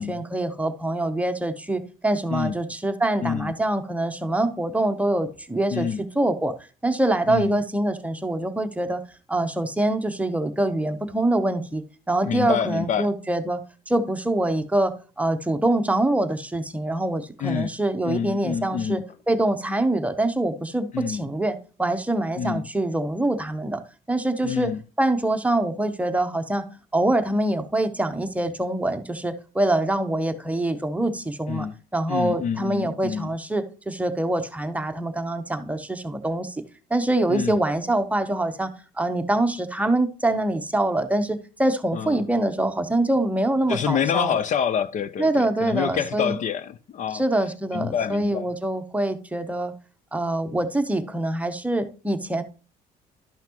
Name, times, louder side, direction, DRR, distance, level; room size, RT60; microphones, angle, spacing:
voice 1, 0.0-6.5 6.8-9.0 9.3-13.6 13.9-19.0 19.3-23.8 24.1-24.7 25.0-26.7 26.9-36.6 36.9-38.7 39.0-44.4 45.2-46.4 47.1-49.7 50.1-52.4, right 1 dB, 10° right, 0.8 m, -24 dB
voice 2, 3.2-3.5 5.7-6.0 7.3-7.6 12.2-13.1 17.4-17.7 18.0-19.0 20.9-21.3 22.4-22.7 24.4-24.8 31.5-31.7 32.1-33.3 37.3-37.6 41.9-42.2 43.7-47.2 47.7-48.5, left 8 dB, 45° left, 0.5 m, -27 dB
11.5 x 5.8 x 2.9 m
cardioid pair, 110°, 17 cm